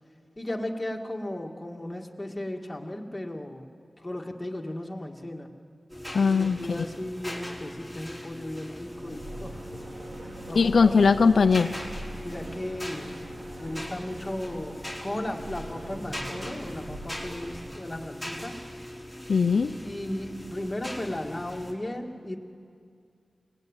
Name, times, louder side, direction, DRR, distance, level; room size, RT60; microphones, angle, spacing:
voice 1, 0.4-3.7 4.0-5.5 6.3-9.7 10.5-10.9 12.2-13.1 13.6-18.6 19.8-22.4, left 1 dB, 20° left, 1 dB, 2.4 m, -35 dB
sound 1, 5.9-21.7, equal, 5° right, 4.4 m, -40 dB
voice 2, 6.1-6.8 10.5-11.7 19.3-19.7, left 5 dB, 80° left, 8 dB, 0.6 m, -20 dB
sound 2, 8.8-18.1, right 1 dB, 70° right, 2.5 m, -43 dB
28.5 x 19.5 x 9.2 m, 2.3 s
wide cardioid pair, 80°, 0 cm